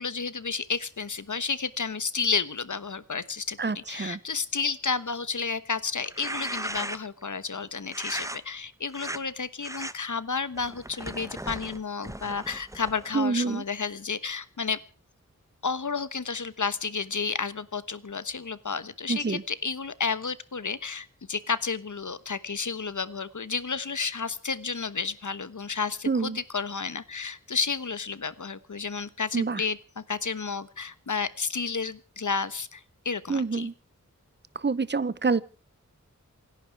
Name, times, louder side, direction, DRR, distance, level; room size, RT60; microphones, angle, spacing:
voice 1, 0.0-14.8 15.6-33.7, left 5 dB, 65° left, 15 dB, 1.2 m, -31 dB
voice 2, 3.6-4.2 13.1-13.6 19.1-19.4 26.1-26.4 29.3-29.6 33.3-33.7 34.5-35.4, right 4 dB, 35° right, 18 dB, 0.8 m, -27 dB
sound 1, 6.0-7.2 7.9-8.4 8.9-9.2 9.6-9.9 10.5-13.1, right 1 dB, 10° right, 1.1 m, -37 dB
27.0 x 11.5 x 4.7 m, 0.39 s
wide cardioid pair, 60°, 32 cm